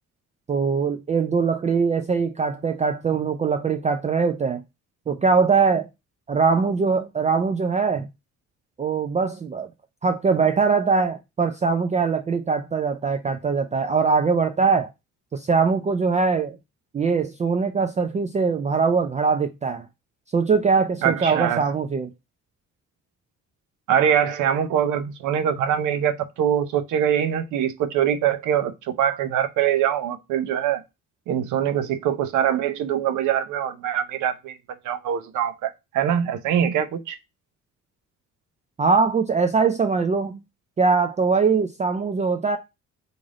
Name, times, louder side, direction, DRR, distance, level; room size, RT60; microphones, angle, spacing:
voice 1, 0.5-4.6 5.1-5.9 6.3-8.1 8.8-9.7 10.0-14.9 15.3-16.6 16.9-19.9 20.3-22.1 38.8-40.4 40.8-42.6, right 5 dB, 25° right, 0.3 m, -22 dB
voice 2, 21.0-21.6 23.9-30.8 31.3-34.6 34.8-37.2, right 9 dB, 85° right, 0.6 m, -23 dB
3.2 x 2.6 x 3.6 m
cardioid pair, 90°, 30 cm